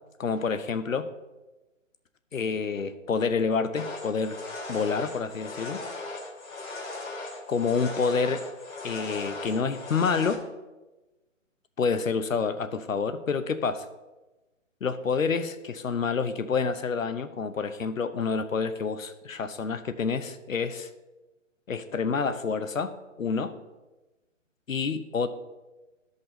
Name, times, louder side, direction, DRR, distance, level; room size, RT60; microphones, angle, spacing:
voice 1, 0.2-1.1 2.3-4.4 4.7-5.8 7.5-8.4 8.8-10.4 11.8-13.8 14.8-20.9 21.7-22.9 23.2-23.5 24.7-25.3, left 5 dB, 90° left, 10 dB, 0.9 m, -28 dB
sound 1, 3.8-10.3, left 2 dB, 60° left, 2.4 m, -38 dB
13.5 x 5.4 x 4.0 m, 1.1 s
hypercardioid pair, 155°, 39 cm